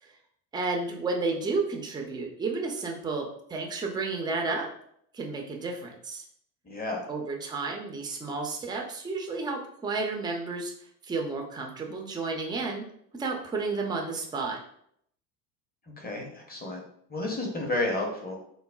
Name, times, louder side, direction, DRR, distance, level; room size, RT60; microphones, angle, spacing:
voice 1, 0.5-4.7 5.1-6.2 7.1-10.7 11.0-12.8 13.2-14.6, right 3 dB, 10° right, 1 dB, 0.5 m, -31 dB
voice 2, 6.6-7.1 16.0-16.8 17.1-18.4, left 2 dB, 20° left, 1 dB, 0.9 m, -31 dB
3.9 x 2.1 x 2.2 m, 0.68 s
hypercardioid pair, 70°, 49 cm